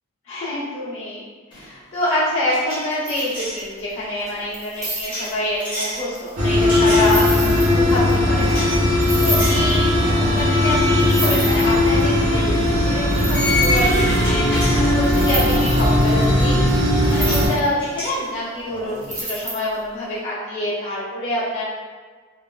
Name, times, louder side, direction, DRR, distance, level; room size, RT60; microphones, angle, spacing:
voice 1, 0.3-1.2 1.5-8.6 9.0-21.6, left 1 dB, 60° left, -11 dB, 1.1 m, -26 dB
sound 1, 1.5-1.7 2.0-3.6 5.0-6.0 6.7-7.6 8.4-8.8 9.2-9.7 10.2-10.3 11.8-12.0 13.3-15.4 16.8-16.9 17.1-17.5 17.8-19.3, left 2 dB, 20° left, 0.8 m, -28 dB
sound 2, 3.1-3.8 4.3-8.1 8.4-8.5 8.7-8.8 9.0-9.8 10.4-10.5 10.7-10.8 11.0-12.0 12.7-12.8 13.1-14.3 15.0-17.7 18.0-18.1 19.0-19.8, right 1 dB, 15° right, 0.5 m, -30 dB
sound 3, 6.4-17.5, left 1 dB, 70° right, 0.9 m, -18 dB
3.5 x 2.1 x 2.3 m, 1.5 s
head